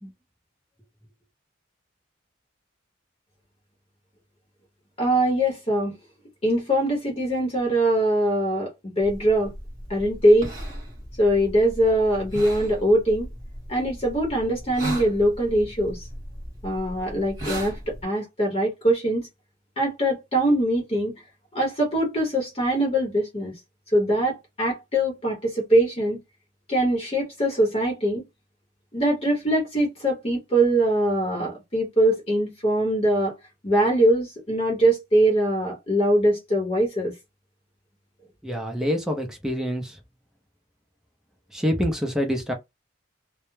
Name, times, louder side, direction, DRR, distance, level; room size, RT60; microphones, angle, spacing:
voice 1, 5.0-6.0 6.4-9.5 9.9-10.5 11.2-13.3 13.7-16.1 16.6-19.3 19.8-21.2 21.5-23.5 23.9-26.2 26.7-28.3 28.9-33.3 33.6-37.1, right 1 dB, 30° left, 0.8 m, -22 dB
sound 1, 9.0-18.0, right 1 dB, 20° right, 1.0 m, -37 dB
voice 2, 38.4-40.0 41.5-42.5, equal, 5° right, 0.5 m, -26 dB
2.2 x 2.0 x 3.1 m
head